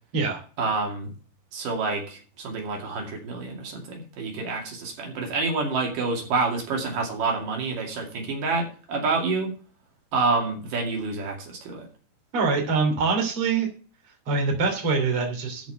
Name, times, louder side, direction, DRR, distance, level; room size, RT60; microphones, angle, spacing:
voice 1, 0.6-1.1 1.5-9.5 10.1-11.9, right 3 dB, 75° right, 1 dB, 4.1 m, -28 dB
voice 2, 12.3-13.7 14.3-15.7, right 4 dB, 45° right, 2 dB, 3.7 m, -24 dB
13.0 x 5.4 x 6.8 m, 0.39 s
omnidirectional pair, 3.8 m